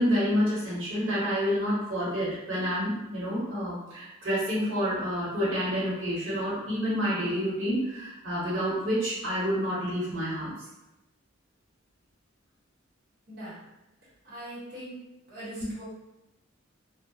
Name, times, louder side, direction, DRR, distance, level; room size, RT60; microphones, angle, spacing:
voice 1, 0.0-10.5, equal, 80° right, -8 dB, 1.1 m, -28 dB
voice 2, 13.3-13.6 14.2-15.0 15.3-15.8, right 1 dB, 55° right, -8 dB, 1.1 m, -41 dB
2.3 x 2.1 x 2.7 m, 0.95 s
head